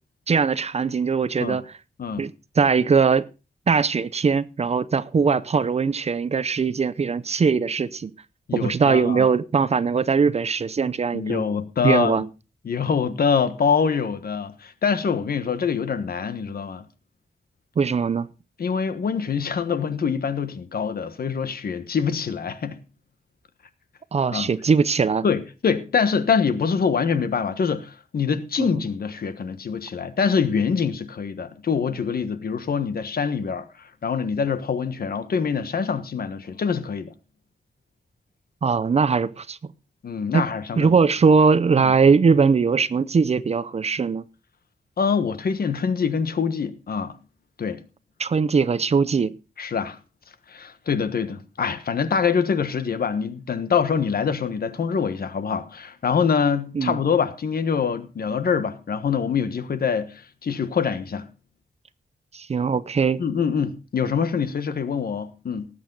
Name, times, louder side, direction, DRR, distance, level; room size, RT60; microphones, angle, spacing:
voice 1, 0.3-1.7 2.2-2.3 2.6-3.3 3.7-8.1 8.5-11.4 11.8-12.3 17.8-18.3 24.1-25.2 28.6-28.8 38.6-39.6 40.3-40.4 40.8-44.2 48.2-49.3 56.7-57.0 62.3-63.2, right 5 dB, 40° right, 0.6 m, -20 dB
voice 2, 8.5-9.3 11.1-12.2 12.6-16.9 18.6-22.8 24.3-24.5 25.2-37.1 40.0-40.9 41.8-41.9 45.0-47.2 47.6-47.8 49.6-50.0 50.5-61.3 63.2-65.7, left 6 dB, 65° left, 1.3 m, -25 dB
18.5 x 8.5 x 4.0 m
wide cardioid pair, 165°, 16 cm